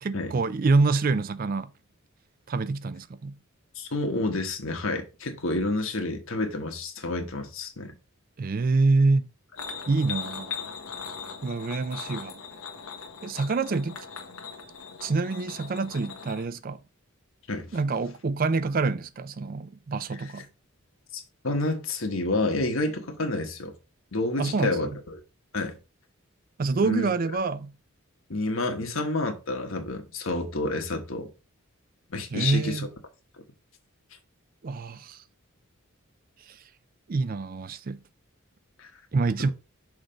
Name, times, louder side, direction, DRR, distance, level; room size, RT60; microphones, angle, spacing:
voice 1, 0.0-1.7 2.5-3.4 8.4-9.3 9.9-10.5 11.4-12.4 13.2-14.0 15.0-16.8 17.7-20.5 24.4-25.0 26.6-27.7 32.3-32.9 34.6-35.2 36.5-36.6 37.1-38.0 39.1-39.5, right 3 dB, 40° right, 0.4 m, -26 dB
voice 2, 3.7-7.9 17.5-17.7 20.1-20.2 21.1-23.7 24.1-25.2 25.5-25.8 26.8-27.1 28.3-31.3 32.1-32.8 38.8-38.9, left 2 dB, 70° left, 1.4 m, -29 dB
sound 1, 9.6-16.5, left 6 dB, 90° left, 1.3 m, -39 dB
6.3 x 3.2 x 5.1 m
head